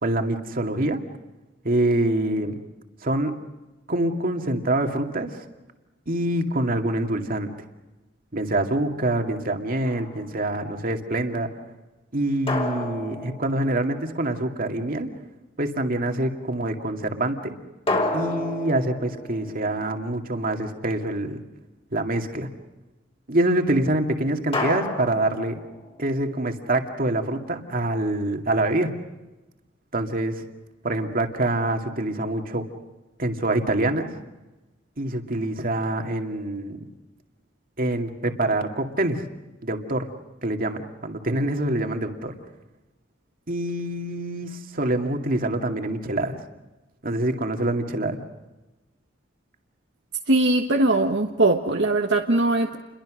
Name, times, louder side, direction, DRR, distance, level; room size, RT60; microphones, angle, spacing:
voice 1, 0.0-1.0 1.6-2.6 3.0-3.3 3.9-5.5 6.1-7.5 8.3-11.5 12.1-15.1 15.6-17.5 18.1-21.4 21.9-22.5 23.3-25.6 26.0-28.9 29.9-30.4 30.8-32.6 33.2-34.1 35.0-36.9 37.8-39.3 39.6-40.1 40.4-42.3 43.5-46.4 47.0-48.2, right 1 dB, 50° right, 4 dB, 2.3 m, -25 dB
sound 1, 9.8-10.4 12.5-14.3 17.9-20.5 24.5-26.2, left 2 dB, 30° left, 5.0 m, -31 dB
voice 2, 50.3-52.8, right 2 dB, 65° right, 2 dB, 1.4 m, -20 dB
29.5 x 23.0 x 6.4 m, 1.1 s
head